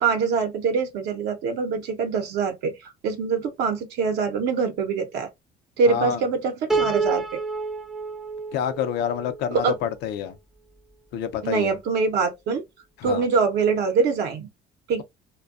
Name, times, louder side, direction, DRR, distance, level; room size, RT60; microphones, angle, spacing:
voice 1, 0.0-5.3 5.8-7.4 9.5-9.7 11.4-12.6 13.0-14.5 14.9-15.0, right 5 dB, 80° right, 0.7 m, -24 dB
voice 2, 5.9-6.2 8.5-10.4 11.1-11.7 13.0-13.2, left 9 dB, 85° left, 0.5 m, -27 dB
Piano, 6.7-9.9, right 4 dB, 5° right, 0.4 m, -28 dB
2.6 x 2.2 x 2.3 m
cardioid pair, 110°, 17 cm